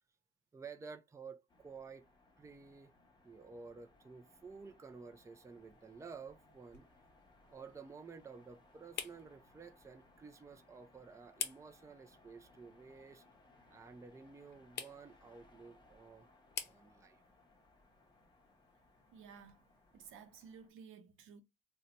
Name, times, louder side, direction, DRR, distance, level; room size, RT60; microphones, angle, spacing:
voice 1, 0.5-2.1 2.4-2.9 3.2-6.9 7.5-13.2 13.7-16.3 16.6-17.2, right 5 dB, 15° right, 0.4 m, -52 dB
sound 1, 1.5-20.7, left 2 dB, 20° left, 0.8 m, -66 dB
sound 2, 5.4-20.2, left 7 dB, 60° left, 0.6 m, -52 dB
voice 2, 19.1-21.4, right 6 dB, 85° right, 0.6 m, -55 dB
2.6 x 2.2 x 4.0 m
cardioid pair, 90°, 20 cm